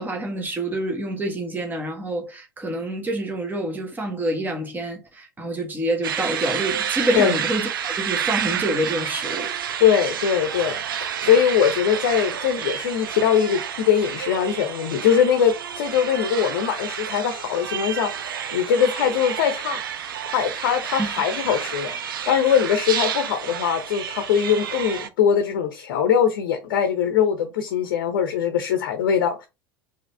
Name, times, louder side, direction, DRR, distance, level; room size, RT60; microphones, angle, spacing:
voice 1, 0.0-9.5 21.0-21.1, right 1 dB, 15° right, 1.5 m, -27 dB
sound 1, 6.0-25.1, right 8 dB, 70° right, 0.5 m, -30 dB
voice 2, 9.8-19.8 20.3-29.5, left 8 dB, 60° left, 0.8 m, -21 dB
4.8 x 2.9 x 3.2 m
figure-of-eight pair, 80°, 12 cm